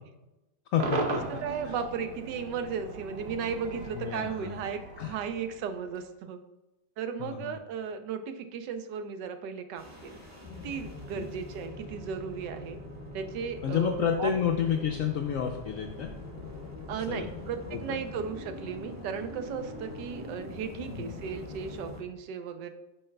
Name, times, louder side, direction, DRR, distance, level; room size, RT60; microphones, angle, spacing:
voice 1, 0.7-1.7 3.9-4.6 5.0-5.2 7.2-7.5 11.1-11.3 13.6-16.1 17.1-17.3 17.7-18.0 20.9-21.1, left 8 dB, 80° left, 3 dB, 0.7 m, -30 dB
Cheering / Crowd / Fireworks, 0.8-6.1, right 3 dB, 60° right, 1.3 m, -37 dB
voice 2, 1.3-6.4 7.0-10.2 10.6-12.8 13.1-14.3 16.9-22.7, right 6 dB, 80° right, 8 dB, 1.2 m, -35 dB
sound 1, 9.8-22.0, left 2 dB, 10° right, 1.4 m, -43 dB
8.7 x 5.5 x 2.2 m, 0.97 s
omnidirectional pair, 1.9 m